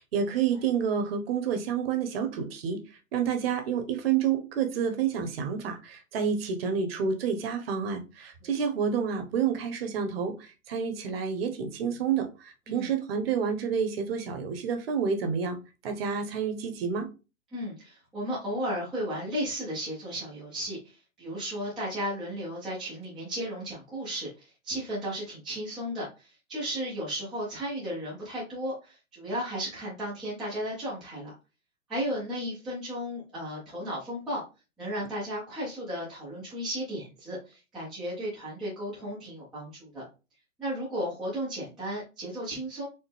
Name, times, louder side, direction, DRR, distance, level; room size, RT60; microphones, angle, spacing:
voice 1, 0.0-2.8 3.1-15.6 15.8-17.1, right 7 dB, 45° right, 0.9 m, -29 dB
voice 2, 17.5-20.8 21.2-31.3 31.9-34.4 34.8-40.0 40.6-42.9, equal, ahead, 0.4 m, -34 dB
4.2 x 2.0 x 3.4 m
figure-of-eight pair, 120°, 42 cm